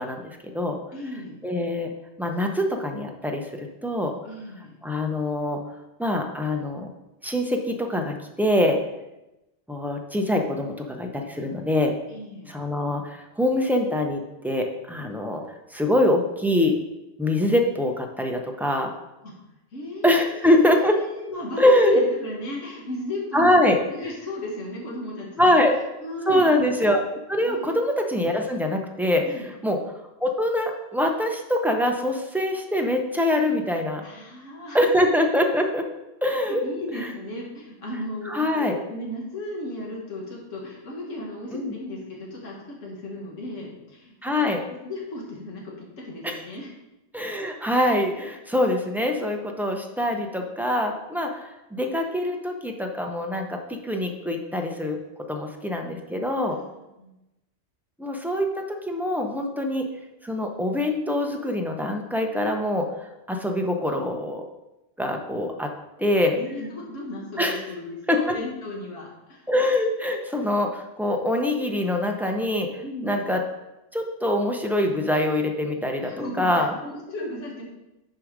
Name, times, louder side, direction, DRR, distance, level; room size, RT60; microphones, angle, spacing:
voice 1, 0.0-0.8 1.4-1.9 2.2-4.1 4.8-5.6 6.0-6.9 7.2-8.8 9.7-11.9 12.5-15.4 15.7-16.8 17.2-18.9 20.0-21.0 21.6-22.0 23.3-23.8 25.4-25.7 26.3-29.3 29.6-29.8 30.2-34.0 34.7-35.9 36.2-36.6 38.2-38.8 41.5-41.7 44.2-44.6 46.2-46.4 47.1-55.0 55.3-56.6 58.0-59.9 60.2-62.9 63.3-64.5 65.0-65.7 66.0-66.4 67.4-67.6 68.1-68.4 69.5-73.4 73.9-76.7, left 1 dB, 5° right, 2 dB, 0.3 m, -24 dB
voice 2, 0.9-1.4 4.2-4.8 12.1-12.5 19.2-19.3 19.7-20.6 20.9-25.5 26.0-26.5 27.4-27.7 29.3-29.5 34.0-34.8 36.4-44.2 44.8-46.7 56.5-57.1 66.4-69.5 72.8-73.2 76.0-77.6, left 1 dB, 80° left, -2 dB, 1.7 m, -35 dB
6.7 x 4.9 x 5.0 m, 0.97 s
omnidirectional pair, 1.3 m